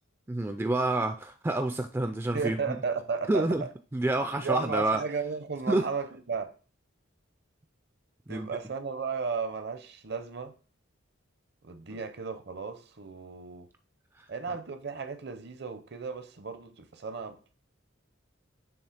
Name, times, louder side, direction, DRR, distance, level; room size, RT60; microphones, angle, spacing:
voice 1, 0.3-2.8 3.3-3.6 3.9-5.0 5.7-5.9 8.3-8.5 11.9-12.0 14.2-14.3, right 2 dB, 10° right, 0.3 m, -28 dB
voice 2, 2.3-3.7 4.4-6.5 8.3-10.5 11.6-13.7 14.3-17.5, right 5 dB, 55° right, 0.7 m, -34 dB
7.2 x 3.2 x 4.9 m
head